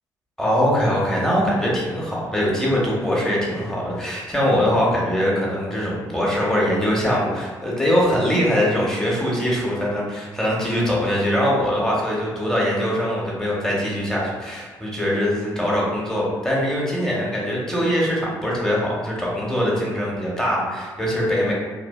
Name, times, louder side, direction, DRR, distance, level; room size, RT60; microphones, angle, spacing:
voice 1, 0.4-21.5, equal, 5° left, -5 dB, 1.0 m, -22 dB
2.7 x 2.3 x 2.3 m, 1.3 s
hypercardioid pair, 45°, 11 cm